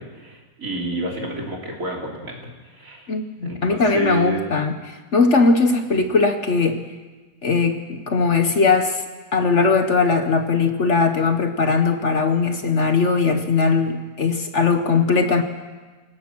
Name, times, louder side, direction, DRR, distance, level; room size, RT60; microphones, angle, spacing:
voice 1, 0.0-3.1 3.4-4.5, right 2 dB, 55° right, -1 dB, 3.8 m, -29 dB
voice 2, 3.1-6.8 7.4-9.0 9.3-15.4, left 4 dB, 50° left, 7 dB, 1.3 m, -19 dB
27.5 x 17.0 x 6.1 m, 1.3 s
omnidirectional pair, 1.7 m